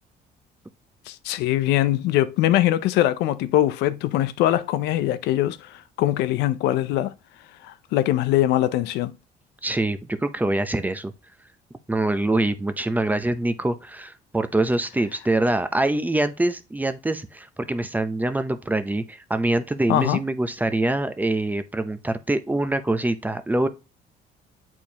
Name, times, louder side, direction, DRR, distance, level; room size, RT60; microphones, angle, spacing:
voice 1, 1.1-7.1 7.6-9.1 19.9-20.2, left 13 dB, 85° left, 0.6 m, -22 dB
voice 2, 9.6-11.1 11.9-23.7, right 2 dB, 10° right, 0.6 m, -24 dB
8.2 x 4.5 x 2.8 m
cardioid pair, 110°, 17 cm